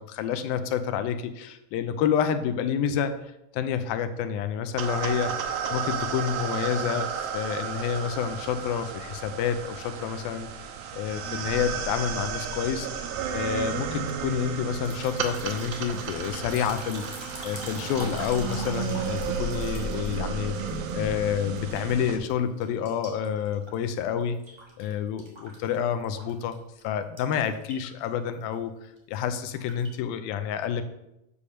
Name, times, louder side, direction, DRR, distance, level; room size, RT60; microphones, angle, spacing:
voice 1, 0.0-10.5 10.9-13.1 13.3-24.4 24.8-26.6 26.8-30.8, left 8 dB, 80° left, 10 dB, 2.3 m, -29 dB
sound 1, 4.8-22.2, right 6 dB, 75° right, 2.5 m, -33 dB
sound 2, 14.7-21.2 21.6-22.3 22.6-24.9 25.2-26.5 26.8-26.9 27.2-28.0 28.3-28.5 29.0-29.9, right 1 dB, 25° right, 0.5 m, -44 dB
8.5 x 5.3 x 6.4 m, 0.86 s
omnidirectional pair, 4.5 m